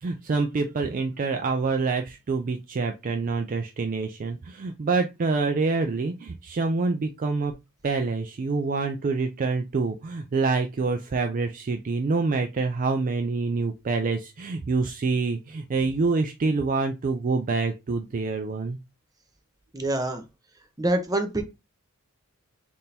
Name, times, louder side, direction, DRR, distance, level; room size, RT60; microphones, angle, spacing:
voice 1, 0.0-7.5 7.8-18.8, right 4 dB, 40° right, 0.3 m, -26 dB
voice 2, 19.7-20.2 20.8-21.4, right 1 dB, 15° right, 0.7 m, -25 dB
3.6 x 2.5 x 4.2 m
head